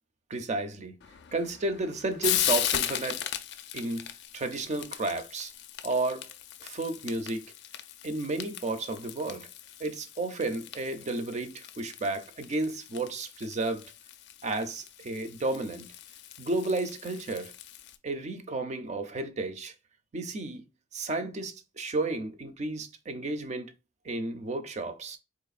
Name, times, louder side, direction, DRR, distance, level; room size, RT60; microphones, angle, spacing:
voice 1, 0.3-1.0 1.3-3.3 3.7-5.5 5.8-6.3 6.6-7.5 8.0-9.5 9.8-13.9 14.4-15.9 16.4-17.5 18.0-19.7 20.1-20.6 20.9-23.7 24.0-25.2, right 2 dB, 35° right, 0.5 m, -32 dB
Frying (food), 1.0-18.0, left 11 dB, 60° left, 0.4 m, -37 dB
3.9 x 3.0 x 2.4 m
head